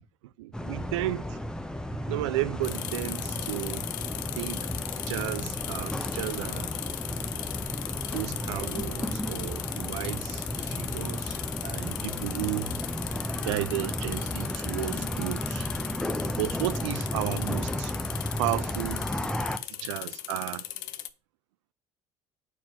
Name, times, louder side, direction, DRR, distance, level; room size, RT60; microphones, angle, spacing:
voice 1, 0.4-1.4 2.1-3.9 4.4-4.7 4.9-6.7 8.1-12.8 13.5-15.7 16.4-17.9 18.4-19.1 19.8-20.6, right 16 dB, 75° right, 0.4 m, -33 dB
sound 1, 0.5-19.6, left 1 dB, 5° left, 0.7 m, -33 dB
sound 2, 2.6-21.1, left 14 dB, 60° left, 0.5 m, -38 dB
4.5 x 4.4 x 5.8 m
figure-of-eight pair, 55°, 15 cm